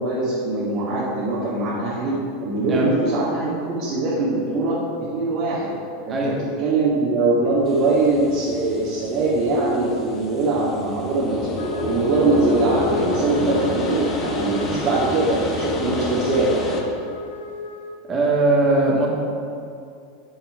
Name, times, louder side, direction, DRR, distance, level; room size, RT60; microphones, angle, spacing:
voice 1, 0.0-2.1 2.4-4.8 5.1-5.7 6.0-11.5 11.8-16.5, right 2 dB, 50° right, -9 dB, 2.4 m, -22 dB
sound 1, 7.7-16.8, left 2 dB, 35° left, 1.5 m, -28 dB
Wind instrument woodwind instrument, 11.5-18.0, left 2 dB, 85° left, 0.9 m, -34 dB
voice 2, 18.1-19.1, right 2 dB, 30° right, -3 dB, 2.3 m, -19 dB
7.6 x 6.3 x 6.0 m, 2.4 s
hypercardioid pair, 95°, 0 cm